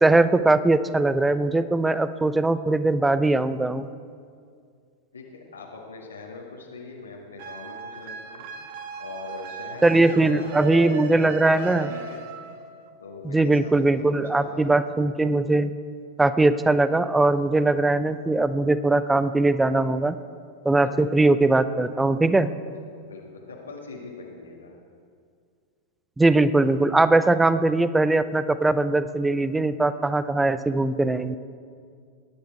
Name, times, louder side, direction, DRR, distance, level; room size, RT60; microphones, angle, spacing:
voice 1, 0.0-3.9 9.8-11.9 13.2-15.7 16.2-20.2 20.6-22.5 26.2-31.4, right 2 dB, 10° right, 14 dB, 0.6 m, -20 dB
voice 2, 5.1-8.5 9.0-12.2 13.0-14.9 17.7-17.8 20.8-21.4 22.7-24.7, left 3 dB, 75° left, -2 dB, 1.7 m, -41 dB
sound 1, 7.4-12.9, right 7 dB, 50° right, 1.3 m, -37 dB
19.5 x 10.5 x 4.6 m, 2.2 s
figure-of-eight pair, 90°, 0 cm